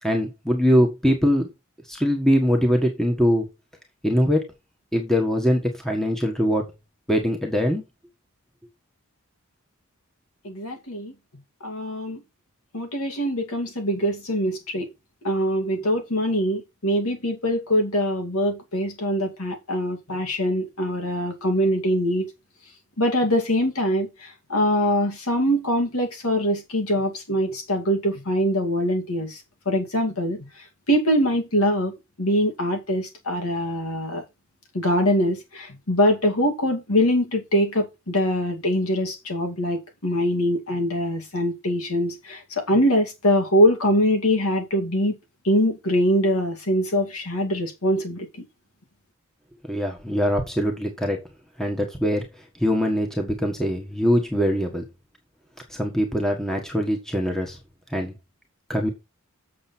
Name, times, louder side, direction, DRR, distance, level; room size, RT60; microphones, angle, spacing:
voice 1, 0.0-1.5 1.9-3.5 4.0-4.4 4.9-6.6 7.1-7.8 49.7-51.2 51.6-52.2 52.6-54.8 55.7-57.6 57.9-58.1 58.7-58.9, equal, ahead, 1.5 m, -22 dB
voice 2, 10.4-11.1 11.6-12.2 12.7-14.9 15.2-22.3 23.0-29.4 29.7-30.5 30.9-34.2 34.7-45.1 45.4-48.3, equal, 90° left, 2.6 m, -23 dB
7.9 x 6.7 x 4.4 m
head